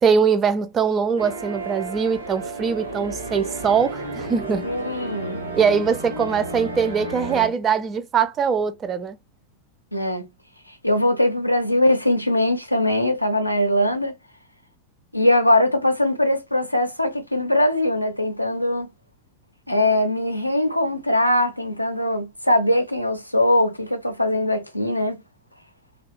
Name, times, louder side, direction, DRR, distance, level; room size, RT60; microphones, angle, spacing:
voice 1, 0.0-4.7 5.5-9.2, right 6 dB, 25° right, 0.4 m, -22 dB
sound 1, 1.2-7.5, right 2 dB, 90° right, 0.9 m, -32 dB
voice 2, 4.6-5.4 9.9-10.3 10.8-14.1 15.1-18.9 19.7-25.2, left 1 dB, 90° left, 0.5 m, -21 dB
2.6 x 2.2 x 2.4 m
figure-of-eight pair, 90°, 0 cm